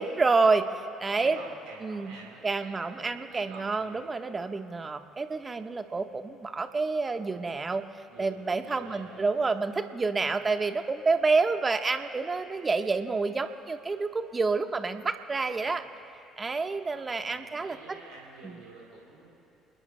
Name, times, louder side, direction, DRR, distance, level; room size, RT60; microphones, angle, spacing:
voice 1, 0.0-1.4 1.8-2.1 2.4-7.8 8.2-15.8 16.4-18.0 18.4-18.6, right 4 dB, 30° right, 7 dB, 1.2 m, -28 dB
voice 2, 1.2-4.0 8.1-9.2 15.6-15.8 16.9-19.3, right 3 dB, 75° right, -3 dB, 4.1 m, -49 dB
28.5 x 20.0 x 2.2 m, 2.8 s
hypercardioid pair, 55°, 0 cm